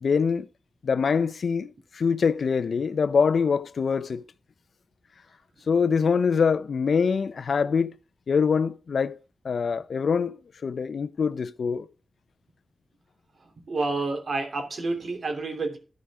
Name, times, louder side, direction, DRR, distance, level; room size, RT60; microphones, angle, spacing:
voice 1, 0.0-0.5 0.8-4.2 5.7-7.9 8.3-9.2 9.4-10.4 10.6-11.9, left 5 dB, 75° left, 0.7 m, -24 dB
voice 2, 13.7-15.8, right 3 dB, 70° right, 3.1 m, -29 dB
14.0 x 5.1 x 4.7 m
wide cardioid pair, 90°, 0 cm